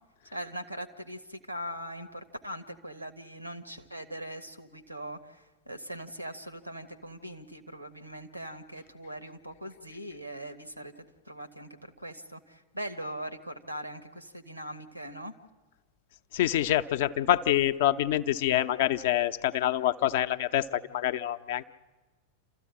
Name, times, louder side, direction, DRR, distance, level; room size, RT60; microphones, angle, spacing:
voice 1, 0.3-10.9 11.2-15.3, right 1 dB, 90° right, 10 dB, 1.3 m, -41 dB
voice 2, 16.3-21.6, left 12 dB, 55° left, 11 dB, 0.6 m, -26 dB
28.5 x 14.0 x 8.6 m, 1.3 s
figure-of-eight pair, 90°, 0 cm